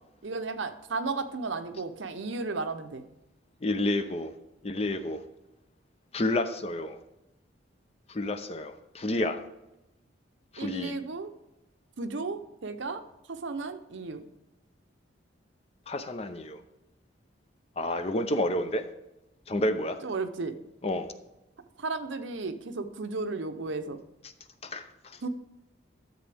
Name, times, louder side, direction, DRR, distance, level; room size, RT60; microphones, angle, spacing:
voice 1, 0.2-3.0 10.6-11.3 12.0-13.0 13.3-14.2 20.0-20.6 21.8-24.0 25.2-25.3, right 3 dB, 70° right, 8 dB, 0.7 m, -34 dB
voice 2, 3.6-4.3 4.6-5.2 6.1-7.0 8.1-9.4 10.5-11.0 15.9-16.6 17.8-18.9 19.5-20.0 20.8-21.1 24.6-24.9, left 1 dB, 30° left, 9 dB, 0.6 m, -29 dB
13.0 x 7.5 x 3.4 m, 0.95 s
head